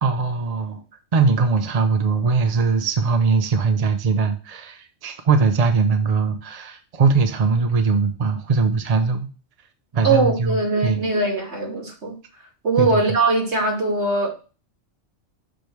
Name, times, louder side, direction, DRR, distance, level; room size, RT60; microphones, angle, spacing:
voice 1, 0.0-0.8 1.1-9.3 9.9-10.5 10.8-11.0 12.8-13.0, right 4 dB, 40° right, 7 dB, 0.7 m, -20 dB
voice 2, 10.0-12.2 12.6-14.3, right 3 dB, 65° right, 0 dB, 2.6 m, -21 dB
6.3 x 5.1 x 4.6 m, 0.35 s
omnidirectional pair, 1.2 m